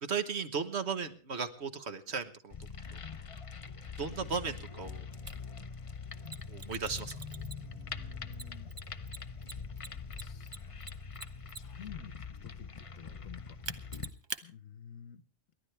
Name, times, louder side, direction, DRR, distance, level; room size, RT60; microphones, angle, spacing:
voice 1, 0.0-2.7 4.0-5.0 6.5-7.2, right 5 dB, 50° right, 9 dB, 1.5 m, -36 dB
sound 1, 2.5-14.1, left 5 dB, 35° left, 0.5 m, -43 dB
Mechanisms, 5.3-5.4 6.2-7.8 8.3-11.9 13.6-14.4, right 4 dB, 30° right, 0.5 m, -43 dB
voice 2, 6.6-8.8 9.8-10.7 11.5-14.0 14.4-15.2, left 7 dB, 65° left, 10 dB, 1.2 m, -51 dB
29.0 x 11.5 x 3.4 m, 0.43 s
omnidirectional pair, 1.5 m